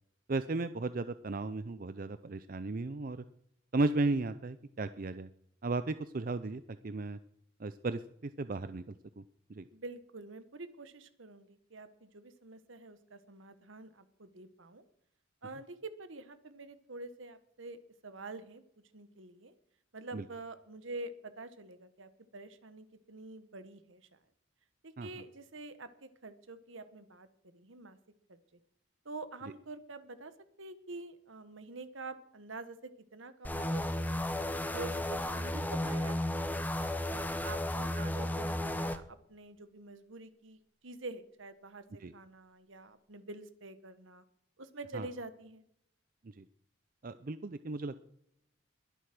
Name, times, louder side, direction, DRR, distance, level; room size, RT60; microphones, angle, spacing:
voice 1, 0.3-3.2 3.7-5.3 5.6-7.2 7.6-8.8 9.2-9.3 9.5-9.7 20.1-20.3 25.0-25.1 42.0-42.1 44.9-45.1 46.4-46.5 47.0-48.1, right 3 dB, 45° right, 13 dB, 0.5 m, -35 dB
voice 2, 9.7-14.8 15.4-18.6 18.9-19.5 19.9-24.2 24.8-27.3 27.5-28.0 28.3-28.4 29.0-30.3 30.6-34.2 34.7-36.6 37.0-44.2 44.6-45.6, right 2 dB, 75° right, 12 dB, 1.4 m, -47 dB
sound 1, 33.4-39.0, left 1 dB, 10° left, 0.8 m, -34 dB
21.5 x 8.2 x 6.0 m, 0.72 s
head